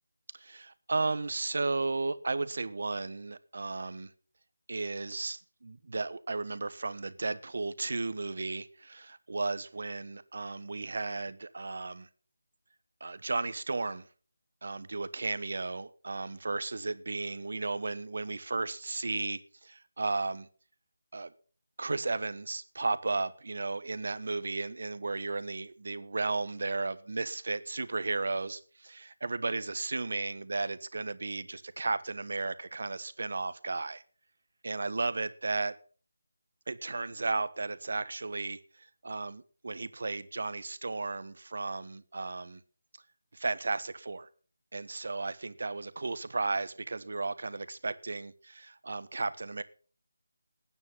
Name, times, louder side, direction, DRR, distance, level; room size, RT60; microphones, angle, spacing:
voice 1, 0.3-4.1 4.7-12.1 13.0-14.1 14.6-20.5 21.1-21.3 21.8-34.0 34.6-35.8 36.7-42.6 43.3-44.3 44.7-49.6, right 3 dB, 55° right, 1.2 m, -34 dB
19.0 x 9.7 x 5.5 m
figure-of-eight pair, 160°, 0 cm